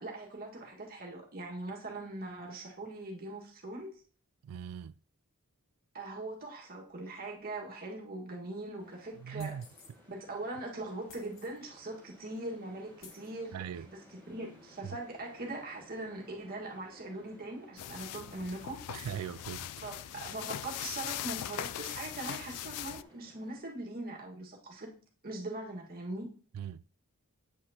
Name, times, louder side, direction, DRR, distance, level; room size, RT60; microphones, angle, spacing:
voice 1, 0.0-4.0 5.9-9.6 10.1-13.6 13.9-18.8 19.8-24.9 25.2-26.3, right 2 dB, 45° right, 1.7 m, -41 dB
voice 2, 4.4-5.0 9.2-9.6 13.5-13.9 14.8-15.0 18.9-19.7 26.5-26.8, right 8 dB, 75° right, 0.3 m, -40 dB
sound 1, 8.8-23.6, left 1 dB, 10° left, 3.7 m, -59 dB
sound 2, 9.4-10.0 11.1-11.6 12.4-12.5 13.0-13.3, left 5 dB, 60° left, 1.3 m, -55 dB
sound 3, 17.8-23.0, left 12 dB, 90° left, 0.3 m, -40 dB
8.3 x 7.7 x 2.8 m
head